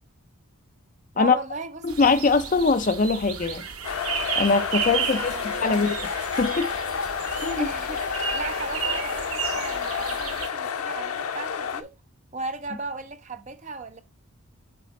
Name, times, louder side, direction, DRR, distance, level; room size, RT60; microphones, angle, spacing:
voice 1, 1.1-1.8 2.4-2.6 5.1-5.9 7.6-11.9 12.3-14.0, right 3 dB, 30° right, 0.7 m, -36 dB
voice 2, 1.8-3.6 4.4-5.3 5.6-5.9 6.4-6.7 7.4-7.7, left 4 dB, 35° left, 0.4 m, -22 dB
sound 1, 1.9-10.5, right 7 dB, 80° right, 1.2 m, -33 dB
sound 2, 3.8-11.8, left 6 dB, 85° left, 0.7 m, -30 dB
8.4 x 4.0 x 4.0 m
head